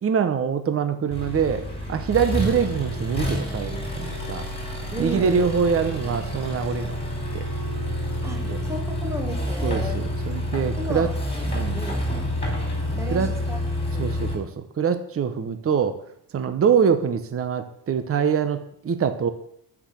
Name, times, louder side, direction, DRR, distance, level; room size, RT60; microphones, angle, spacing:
voice 1, 0.0-1.6 1.9-4.5 5.0-6.9 7.3-7.4 8.4-8.6 9.6-11.1 11.5-11.8 13.1-13.3 14.0-16.0 16.3-18.6 18.8-19.3, right 7 dB, 30° right, 9 dB, 0.9 m, -24 dB
Accelerating revving vroom, 1.1-14.3, equal, 15° left, 3.9 m, -28 dB
voice 2, 4.9-5.5 8.2-10.1 10.8-11.1 11.7-12.1 12.9-13.6 13.9-14.2, right 1 dB, 5° right, 3 dB, 1.6 m, -33 dB
13.0 x 6.2 x 8.3 m, 0.71 s
cardioid pair, 140°, 43 cm